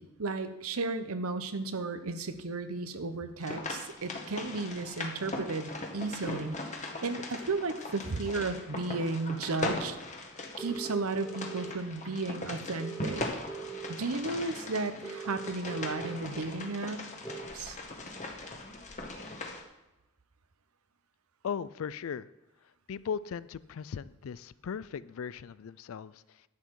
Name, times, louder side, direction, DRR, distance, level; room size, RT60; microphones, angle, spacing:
voice 1, 0.0-10.0 10.6-13.2 14.0-17.0 17.5-17.8, right 3 dB, 75° right, 10 dB, 0.8 m, -34 dB
sound 1, 3.4-19.6, left 2 dB, 35° left, 1.2 m, -40 dB
sound 2, 10.6-11.7 12.8-13.9 15.0-16.2 17.2-17.4, right 6 dB, 5° left, 0.9 m, -41 dB
voice 2, 21.4-22.3 22.9-26.5, left 7 dB, 65° left, 18 dB, 0.4 m, -38 dB
10.5 x 7.9 x 4.7 m, 1.0 s
head